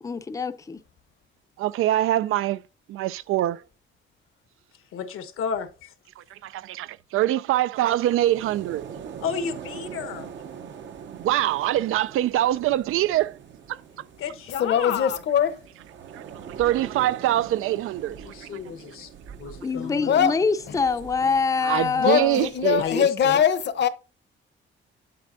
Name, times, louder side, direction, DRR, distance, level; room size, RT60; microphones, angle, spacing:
voice 1, 0.0-0.8 19.6-22.5, left 5 dB, 15° left, 0.5 m, -25 dB
voice 2, 1.6-2.6 2.9-3.6 6.2-8.9 11.1-13.4 13.7-13.8 16.1-16.2 16.6-18.5 21.6-23.1, right 13 dB, 80° right, 0.4 m, -24 dB
voice 3, 4.9-5.9 9.2-10.3 14.2-15.2 18.1-19.1 19.4-20.2 21.2-21.3 22.8-23.4, left 7 dB, 85° left, 1.2 m, -32 dB
sound 1, 7.7-22.9, right 7 dB, 60° right, 0.8 m, -43 dB
voice 4, 14.6-15.5 20.1-20.3 22.0-23.9, left 8 dB, 55° left, 0.9 m, -21 dB
8.4 x 7.7 x 2.6 m
cardioid pair, 140°, 21 cm